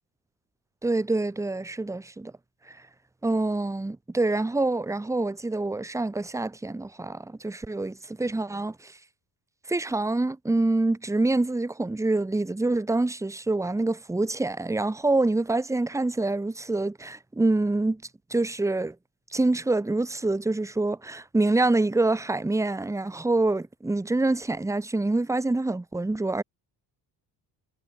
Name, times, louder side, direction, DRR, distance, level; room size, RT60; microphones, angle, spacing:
voice 1, 0.8-2.3 2.7-2.8 3.2-9.0 9.7-18.0 18.3-19.0 19.3-26.4, right 2 dB, 5° right, 1.7 m, -26 dB
cardioid pair, 180°, 41 cm